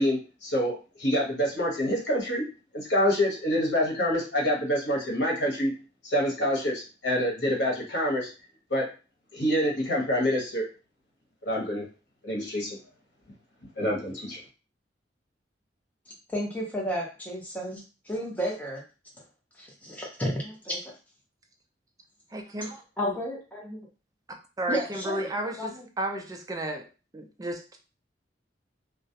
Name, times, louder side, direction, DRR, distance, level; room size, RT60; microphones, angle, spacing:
voice 1, 0.0-2.4 2.7-5.7 6.1-8.3 8.7-8.9 9.3-10.7 11.4-11.9 12.2-12.8 13.8-14.4, equal, 80° left, -2 dB, 1.0 m, -26 dB
voice 2, 16.3-18.8 19.6-20.9 23.0-23.8 24.7-25.3 25.6-25.9, equal, 10° left, -3 dB, 0.7 m, -32 dB
voice 3, 22.3-23.2 24.6-26.9 27.1-27.8, right 1 dB, 20° right, 3 dB, 0.4 m, -33 dB
2.3 x 2.0 x 2.7 m, 0.32 s
head